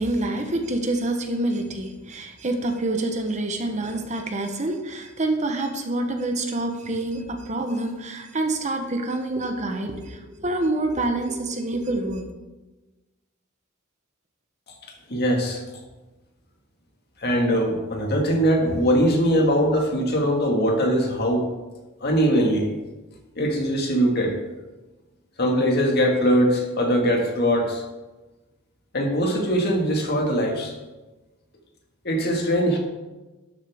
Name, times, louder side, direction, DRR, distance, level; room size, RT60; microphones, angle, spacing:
voice 1, 0.0-12.3, right 2 dB, 35° right, 5 dB, 1.0 m, -27 dB
voice 2, 15.1-15.6 17.2-21.5 22.0-22.7 23.4-24.4 25.4-27.8 28.9-30.7 32.0-32.8, equal, 55° left, 1 dB, 1.9 m, -21 dB
12.5 x 7.2 x 3.6 m, 1.1 s
head